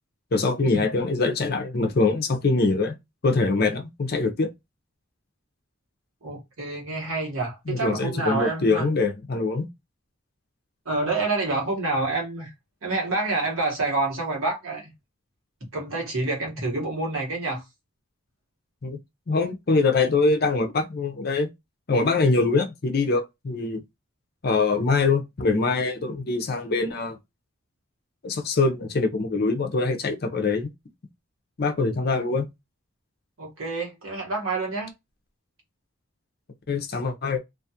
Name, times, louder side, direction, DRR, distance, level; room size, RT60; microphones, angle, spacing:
voice 1, 0.3-3.0 3.2-4.5 7.7-9.7 18.8-19.0 19.3-21.5 21.9-23.8 24.4-27.2 28.2-30.7 31.6-32.5 36.7-37.4, left 3 dB, 45° left, 0.5 m, -23 dB
voice 2, 6.2-8.9 10.8-12.5 12.8-14.9 15.7-17.6 33.4-34.9, right 3 dB, 80° right, 1.2 m, -28 dB
2.4 x 2.3 x 2.7 m
head